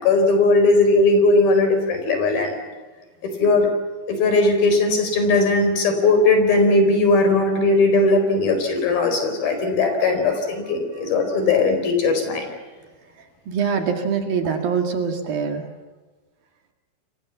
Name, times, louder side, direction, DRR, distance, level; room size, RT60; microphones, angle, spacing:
voice 1, 0.0-2.5 3.2-3.7 4.1-12.5, left 3 dB, 55° left, 6 dB, 6.1 m, -18 dB
voice 2, 13.2-15.7, right 6 dB, 60° right, 5 dB, 3.6 m, -24 dB
29.5 x 23.5 x 7.2 m, 1.3 s
omnidirectional pair, 5.2 m